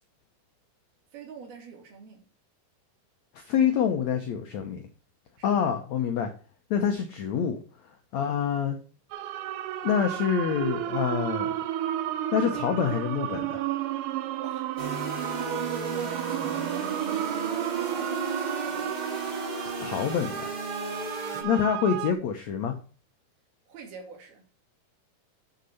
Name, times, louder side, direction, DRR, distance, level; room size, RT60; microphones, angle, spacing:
voice 1, 1.1-2.3 5.4-5.5 14.4-17.4 17.9-19.0 23.7-24.4, right 5 dB, 70° right, 4.2 m, -46 dB
voice 2, 3.3-4.8 5.4-6.3 6.7-7.6 8.1-8.8 9.8-11.5 12.3-13.6 19.8-20.5 21.4-22.7, left 8 dB, 80° left, 1.6 m, -26 dB
sound 1, 9.1-22.1, right 12 dB, 85° right, 1.8 m, -32 dB
sound 2, 14.8-21.4, right 2 dB, 35° right, 0.7 m, -35 dB
9.0 x 6.6 x 5.6 m
omnidirectional pair, 4.6 m